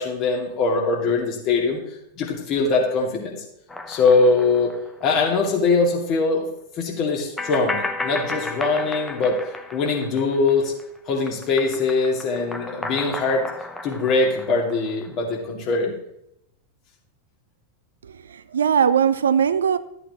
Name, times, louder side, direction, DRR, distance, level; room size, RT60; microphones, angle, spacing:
voice 1, 0.0-1.8 2.2-3.4 3.9-4.7 5.0-6.4 6.8-9.4 9.7-10.7 11.1-13.4 13.8-15.9, left 3 dB, 40° left, 2.3 m, -22 dB
sound 1, 3.7-5.3 5.6-5.7 7.4-10.8 11.1-15.3, left 2 dB, 10° left, 0.7 m, -33 dB
voice 2, 18.0-19.8, right 7 dB, 65° right, 0.4 m, -20 dB
13.5 x 8.3 x 2.9 m
figure-of-eight pair, 90°, 0 cm